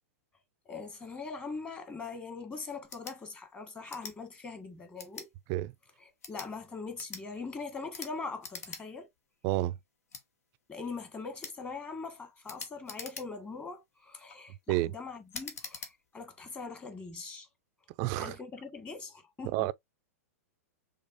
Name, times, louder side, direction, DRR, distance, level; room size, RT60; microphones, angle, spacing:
voice 1, 0.6-5.3 6.0-9.1 10.7-17.5 18.2-19.7, left 4 dB, 15° left, 1.6 m, -42 dB
sound 1, 2.8-3.2 3.9-4.2 5.0-5.3 6.1-6.5 7.0-7.2 7.9-8.1 8.4-8.8 9.2-9.3 10.1-10.2 11.4-11.6 12.5-13.5 14.1-14.4 15.3-15.9, left 5 dB, 75° left, 1.6 m, -44 dB
voice 2, 9.4-9.8 14.7-14.9 18.0-18.3 19.5-19.7, right 17 dB, 40° right, 0.4 m, -29 dB
5.4 x 3.8 x 2.6 m
hypercardioid pair, 115°, 8 cm